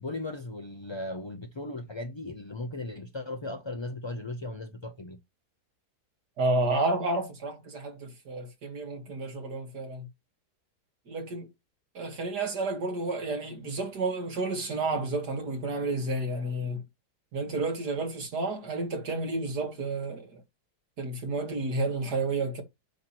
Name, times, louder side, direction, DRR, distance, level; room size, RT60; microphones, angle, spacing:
voice 1, 0.0-5.2, left 2 dB, 35° left, 0.4 m, -37 dB
voice 2, 6.4-10.1 11.1-11.5 11.9-16.8 17.3-20.4 21.0-22.6, right 2 dB, 90° right, 2.5 m, -31 dB
8.4 x 2.9 x 6.0 m
omnidirectional pair, 1.7 m